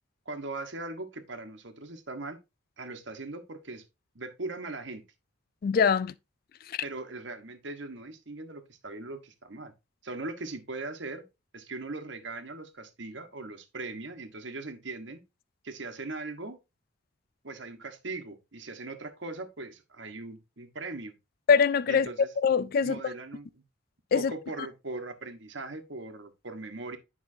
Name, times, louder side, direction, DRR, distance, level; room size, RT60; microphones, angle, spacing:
voice 1, 0.2-2.4 2.8-3.8 4.1-5.0 6.8-9.7 10.0-11.2 11.5-15.2 15.6-16.6 17.4-21.1 21.9-22.3 22.8-23.5 24.1-27.0, right 3 dB, 65° right, 1.2 m, -39 dB
voice 2, 5.6-6.1 6.7-6.8 21.5-22.1 22.4-23.0 24.1-24.3, left 6 dB, 45° left, 0.3 m, -23 dB
9.8 x 5.5 x 2.7 m
head